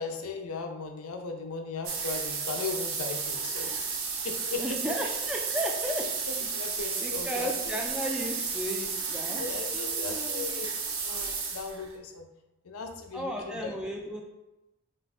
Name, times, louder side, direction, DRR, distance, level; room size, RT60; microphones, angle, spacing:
voice 1, 0.0-4.0 4.2-4.8 6.3-7.8 9.4-10.7 11.0-12.3 12.6-13.7, left 4 dB, 90° left, 5 dB, 0.5 m, -37 dB
sound 1, 1.8-11.9, right 5 dB, 75° right, 0.6 m, -33 dB
voice 2, 4.6-6.0 7.0-9.5 9.7-10.5 13.1-14.2, equal, 5° right, 0 dB, 0.3 m, -34 dB
3.8 x 2.2 x 4.1 m, 0.97 s
head